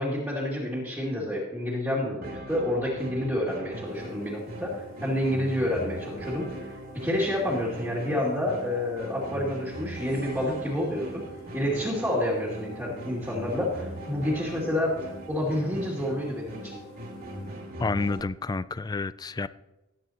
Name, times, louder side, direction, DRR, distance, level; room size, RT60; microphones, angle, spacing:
voice 1, 0.0-6.7 6.9-11.1 11.5-14.9 15.3-16.8, left 1 dB, 5° right, -7 dB, 2.4 m, -29 dB
sound 1, 2.2-18.2, equal, 50° right, 2.3 m, -40 dB
sound 2, 3.8-17.8, equal, 90° left, 1.3 m, -50 dB
voice 2, 17.8-19.5, left 3 dB, 20° left, 16 dB, 0.3 m, -29 dB
18.5 x 9.4 x 2.9 m, 1.0 s
head